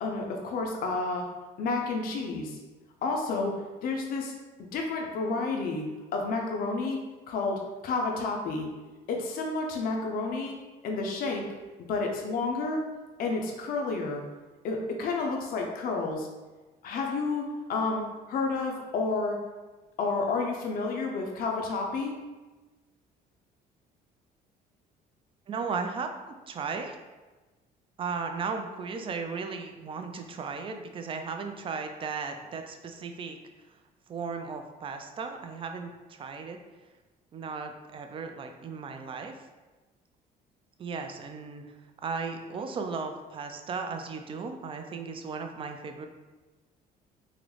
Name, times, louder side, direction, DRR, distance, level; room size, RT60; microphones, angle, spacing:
voice 1, 0.0-1.3 1.6-2.6 3.0-3.6 3.8-4.3 4.7-7.0 7.3-8.7 9.1-10.6 10.8-11.4 11.9-12.8 13.2-14.2 14.6-16.3 16.8-19.4 20.0-22.1, left 3 dB, 60° left, 1 dB, 0.5 m, -30 dB
voice 2, 25.5-26.1 26.5-27.0 28.0-33.4 34.1-36.6 37.3-39.3 40.8-41.6 42.0-46.1, right 5 dB, 30° right, 5 dB, 0.3 m, -36 dB
3.7 x 2.0 x 3.1 m, 1.2 s
cardioid pair, 110°, 17 cm